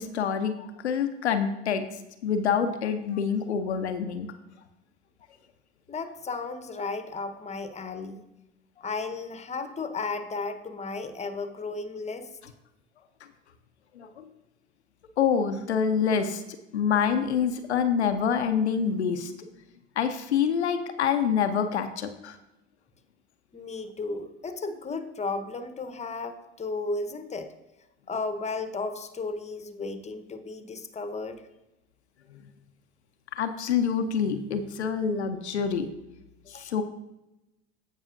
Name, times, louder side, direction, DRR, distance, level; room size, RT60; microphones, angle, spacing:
voice 1, 0.0-1.8 2.2-4.3 14.0-14.2 15.2-19.3 20.0-22.4 32.3-32.4 33.3-35.9 36.5-36.8, left 7 dB, 85° left, 8 dB, 0.6 m, -26 dB
voice 2, 5.9-8.2 8.8-12.3 23.5-27.5 28.1-31.4 36.5-36.6, left 3 dB, 20° left, 9 dB, 1.0 m, -34 dB
15.5 x 5.5 x 2.5 m, 0.95 s
figure-of-eight pair, 60°, 32 cm